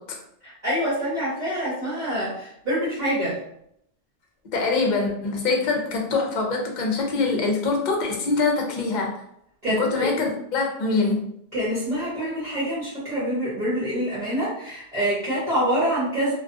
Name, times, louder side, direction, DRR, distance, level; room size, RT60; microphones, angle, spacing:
voice 1, 0.4-3.4 9.6-10.1 11.5-16.3, equal, 45° right, -10 dB, 1.0 m, -26 dB
voice 2, 4.5-9.1 9.8-11.2, left 3 dB, 55° left, 1 dB, 0.6 m, -24 dB
2.4 x 2.2 x 2.5 m, 0.73 s
omnidirectional pair, 1.0 m